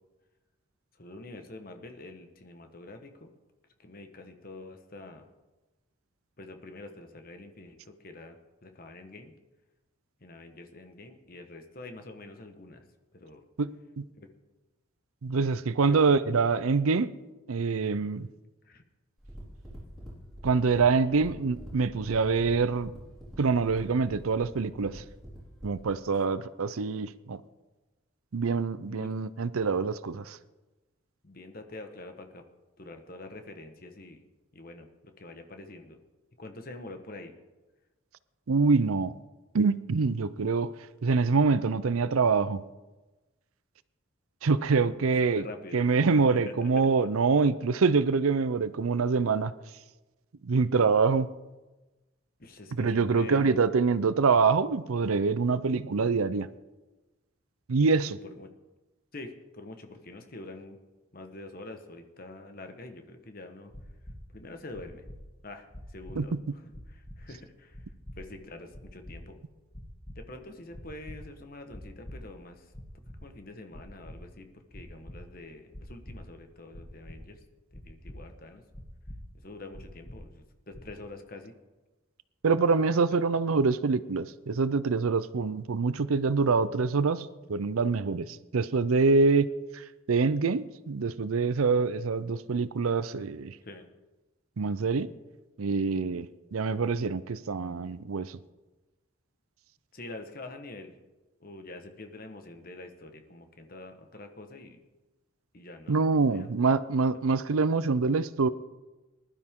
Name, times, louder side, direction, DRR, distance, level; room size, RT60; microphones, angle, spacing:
voice 1, 1.0-3.3 3.8-5.3 6.4-9.3 10.2-12.8 13.1-13.4 14.2-14.3 15.9-16.0 18.6-18.8 28.9-29.1 31.2-32.4 32.8-34.2 34.5-36.0 36.4-37.3 44.6-45.0 45.3-46.9 52.4-53.5 58.0-58.5 59.1-60.8 61.1-63.7 64.3-65.0 65.4-66.4 66.6-67.8 68.2-69.4 70.1-72.7 73.2-77.4 77.7-78.6 79.4-81.5 83.1-83.2 93.6-93.9 99.9-100.9 101.4-104.8 105.5-106.0 106.3-106.7, left 2 dB, 45° left, 6 dB, 1.3 m, -46 dB
voice 2, 13.6-14.0 15.2-17.1 17.5-18.3 20.4-22.9 23.4-25.0 25.6-27.4 28.3-30.4 38.5-39.1 39.5-40.7 41.0-42.6 44.4-45.4 45.7-49.5 50.4-51.3 52.7-56.5 57.7-58.2 66.2-66.4 82.4-93.6 94.6-95.1 95.6-96.3 96.5-98.4 105.9-108.5, right 4 dB, 85° right, 15 dB, 0.6 m, -25 dB
sound 1, 19.2-25.9, equal, ahead, 4.6 m, -45 dB
sound 2, 63.7-64.2 64.7-65.2 65.7-66.2 66.7-67.2 67.7-68.2 68.7-69.1 69.7-70.2 70.7-71.2 71.7-72.2 72.7-73.2 73.7-74.2 74.7-75.2 75.7-76.1 76.7-77.2 77.7-78.2 78.7-79.2 79.7-80.2 80.7-81.0, equal, 15° left, 1.6 m, -44 dB
20.0 x 12.0 x 3.7 m, 1.1 s
head